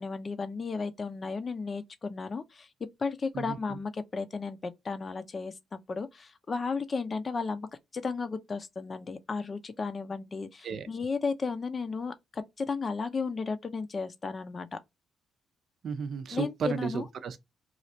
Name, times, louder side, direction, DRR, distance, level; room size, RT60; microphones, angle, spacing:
voice 1, 0.0-2.7 3.0-14.7 16.3-17.0, left 4 dB, 35° left, 0.6 m, -34 dB
voice 2, 3.3-3.8 10.6-10.9 15.8-17.4, right 6 dB, 60° right, 0.5 m, -33 dB
3.1 x 2.4 x 2.7 m
cardioid pair, 90°, 0 cm